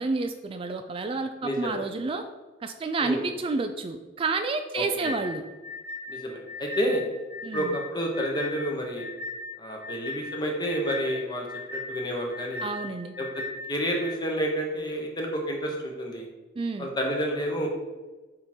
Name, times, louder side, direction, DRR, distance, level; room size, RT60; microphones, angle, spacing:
voice 1, 0.0-2.2 2.6-5.4 7.4-7.8 12.6-13.1 16.6-16.9, right 3 dB, 30° right, 7 dB, 0.3 m, -30 dB
voice 2, 1.4-1.8 3.0-3.2 4.7-5.2 6.1-7.0 7.5-9.1 9.6-11.5 11.7-12.7 13.2-13.4 13.7-16.2 16.8-17.7, equal, 25° left, 0 dB, 1.1 m, -29 dB
sound 1, 5.0-14.2, left 3 dB, 10° right, 1.0 m, -38 dB
6.7 x 3.7 x 4.4 m, 1.2 s
head